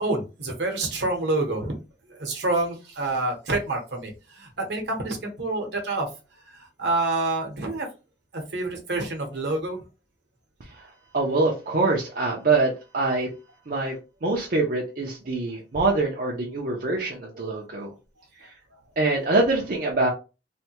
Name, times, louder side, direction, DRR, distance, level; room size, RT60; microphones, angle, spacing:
voice 1, 0.0-1.8 2.1-6.1 6.5-7.9 8.3-9.8, right 2 dB, 70° right, 2 dB, 1.0 m, -27 dB
voice 2, 10.7-13.3 13.7-17.9 18.4-18.5 19.0-20.1, right 3 dB, 50° right, -2 dB, 0.6 m, -25 dB
3.3 x 2.2 x 2.9 m, 0.30 s
head